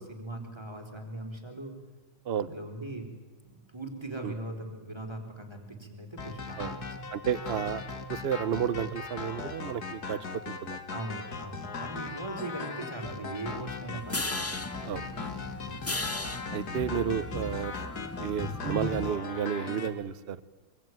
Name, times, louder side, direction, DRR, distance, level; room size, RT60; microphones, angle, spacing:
voice 1, 0.0-1.7 2.4-3.1 3.5-7.1 10.9-14.3 15.6-16.0, right 2 dB, 15° right, 3 dB, 4.0 m, -40 dB
sound 1, 6.2-19.9, left 4 dB, 65° left, 2.6 m, -39 dB
voice 2, 7.1-7.8 8.1-10.8 14.8-15.3 16.5-17.7 18.2-20.4, right 8 dB, 45° right, 15 dB, 1.0 m, -32 dB
sound 2, 14.0-19.1, left 2 dB, 20° left, 0.3 m, -36 dB
24.5 x 23.5 x 9.3 m, 1.2 s
omnidirectional pair, 1.8 m